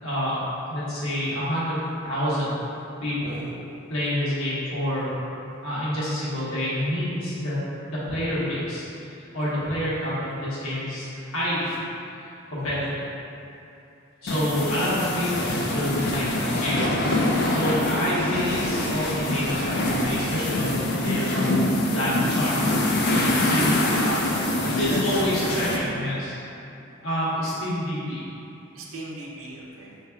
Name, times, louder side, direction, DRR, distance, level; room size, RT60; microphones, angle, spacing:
voice 1, 0.0-0.4 0.7-2.6 3.0-3.4 3.9-5.2 5.6-7.6 7.8-11.7 12.5-13.1 14.2-16.9 17.2-21.6 21.9-22.5 23.4-23.8 24.7-26.4 27.0-28.2, equal, 85° left, -10 dB, 1.3 m, -28 dB
voice 2, 3.2-3.6 12.6-12.9 17.7-18.1 23.2-25.9 28.7-29.9, right 2 dB, 80° right, -3 dB, 0.7 m, -38 dB
sound 1, 14.3-25.8, left 1 dB, 50° left, 0.4 m, -24 dB
5.4 x 3.1 x 2.3 m, 2.7 s
head